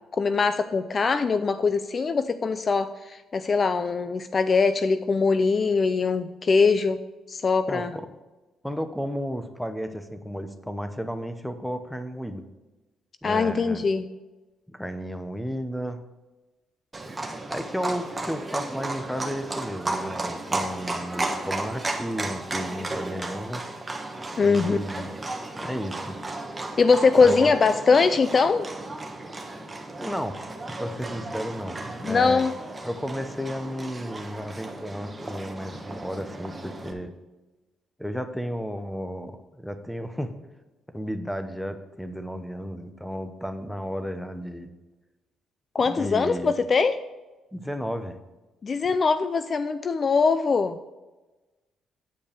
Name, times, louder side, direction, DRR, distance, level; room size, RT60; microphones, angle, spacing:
voice 1, 0.1-7.0 7.3-7.9 13.2-14.1 24.4-24.8 26.8-28.7 32.0-32.5 45.7-47.0 48.6-50.8, left 4 dB, 40° left, 11 dB, 0.4 m, -22 dB
voice 2, 7.7-8.1 8.6-12.4 13.2-13.8 14.7-16.0 17.4-23.6 24.4-25.1 25.6-26.2 27.2-27.5 30.0-30.4 30.8-32.4 32.8-37.1 38.0-40.3 40.9-44.7 45.8-46.6 47.5-48.2, equal, ahead, 8 dB, 0.9 m, -33 dB
Livestock farm animals working animals, 16.9-36.9, right 2 dB, 20° right, 1.2 m, -34 dB
8.9 x 5.2 x 6.7 m, 1.1 s
cardioid pair, 90°, 0 cm